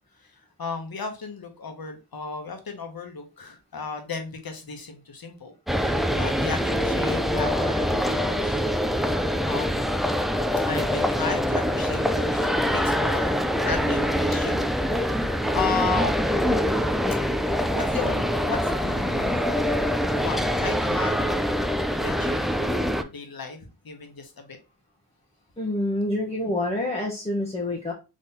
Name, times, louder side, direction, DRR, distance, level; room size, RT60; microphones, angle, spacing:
voice 1, 0.2-8.7 8.9-9.9 10.7-14.7 15.0-16.4 17.7-19.5 20.1-21.3 21.9-23.6 23.8-24.6, left 4 dB, 70° left, 1.1 m, -34 dB
sound 1, 5.7-23.0, equal, ahead, 0.3 m, -24 dB
voice 2, 25.6-27.9, left 1 dB, 15° left, 0.9 m, -27 dB
3.8 x 3.1 x 4.0 m
wide cardioid pair, 95°, 37 cm